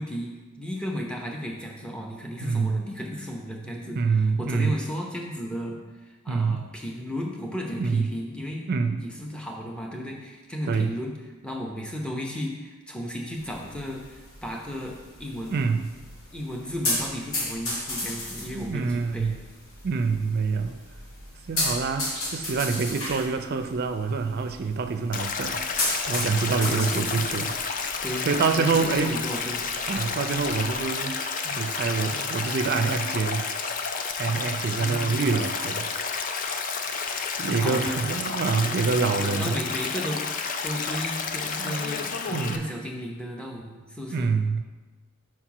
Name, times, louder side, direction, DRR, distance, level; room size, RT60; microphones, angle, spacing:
voice 1, 0.0-4.0 4.4-8.7 9.0-11.1 11.4-15.6 16.3-19.3 19.9-20.3 26.6-27.3 28.0-29.7 30.4-30.6 34.8-35.4 37.6-38.4 38.6-44.3, equal, 5° left, -1 dB, 0.7 m, -34 dB
voice 2, 2.4-2.8 4.0-4.8 6.3-6.7 7.8-8.1 8.7-9.0 10.7-10.9 15.5-15.9 18.5-19.4 19.8-20.8 21.5-27.5 27.8-28.0 28.3-29.1 29.9-31.2 31.4-33.5 34.2-35.9 36.4-37.1 37.4-39.6 41.6-41.8 42.3-42.6 44.1-44.6, right 4 dB, 45° right, 7 dB, 0.4 m, -26 dB
sound 1, 13.4-30.8, left 1 dB, 75° left, 1.9 m, -35 dB
Stream, 25.1-42.6, left 5 dB, 40° left, 0.4 m, -31 dB
4.7 x 4.5 x 5.8 m, 1.3 s
head